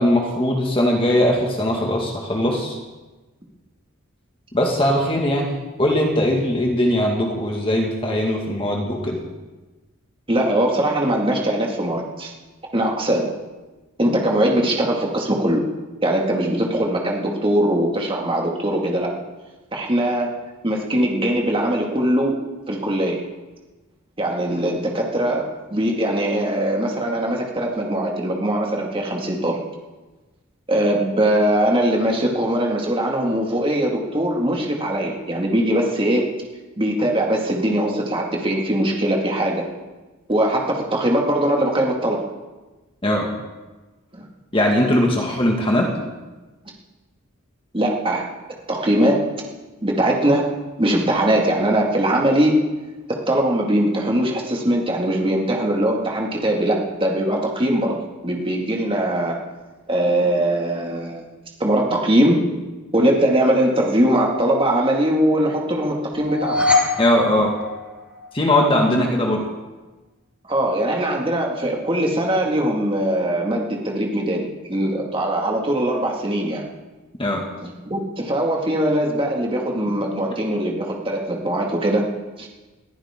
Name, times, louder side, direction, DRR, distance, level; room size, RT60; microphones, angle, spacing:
voice 1, 0.0-2.8 4.5-9.2 43.0-43.3 44.5-45.9 67.0-67.5 68.3-69.4 77.2-77.4, left 1 dB, 25° left, 0 dB, 1.9 m, -20 dB
voice 2, 10.3-12.3 12.7-13.3 14.0-15.6 16.0-19.1 19.7-20.3 20.6-22.4 22.7-23.3 24.2-29.6 30.7-36.3 36.8-39.6 40.3-42.3 44.1-44.3 47.7-48.3 48.7-49.3 49.8-50.5 50.8-52.6 53.1-59.4 59.9-61.2 61.6-62.6 62.9-66.7 70.5-76.6 77.6-82.0 82.4-82.5, right 1 dB, 25° right, -1 dB, 2.1 m, -21 dB
sound 1, 66.1-68.4, left 3 dB, 5° right, 3.0 m, -23 dB
21.5 x 14.5 x 3.8 m, 1.2 s
head